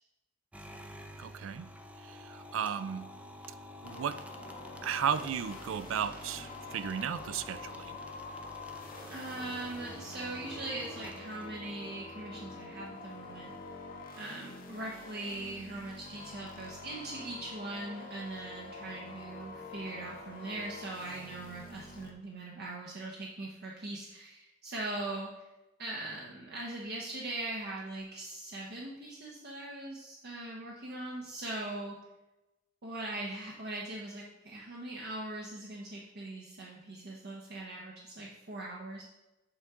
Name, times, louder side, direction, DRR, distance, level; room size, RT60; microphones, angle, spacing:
sound 1, 0.5-11.9, equal, 5° right, 0.5 m, -49 dB
voice 1, 1.2-1.7 2.0-3.0 3.8-4.2 4.8-8.0, right 8 dB, 75° right, 14 dB, 0.4 m, -34 dB
sound 2, 3.8-22.1, left 3 dB, 45° left, 0.8 m, -47 dB
voice 2, 9.1-13.5 14.2-25.3 25.8-32.0 32.8-39.0, right 2 dB, 55° right, -3 dB, 0.8 m, -41 dB
8.3 x 3.7 x 4.7 m, 1.0 s
head